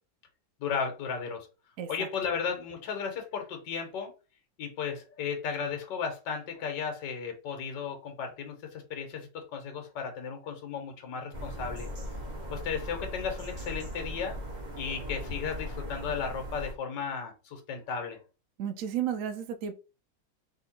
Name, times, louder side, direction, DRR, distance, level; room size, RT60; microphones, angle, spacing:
voice 1, 0.6-1.5 1.9-4.1 4.6-11.9 12.5-14.4 14.8-18.2, left 6 dB, 70° left, 4 dB, 1.6 m, -35 dB
voice 2, 1.8-2.1 18.6-19.8, right 9 dB, 75° right, 7 dB, 0.7 m, -33 dB
sound 1, 11.3-16.7, equal, 35° right, 0.7 m, -39 dB
3.4 x 2.9 x 4.2 m, 0.32 s
omnidirectional pair, 2.0 m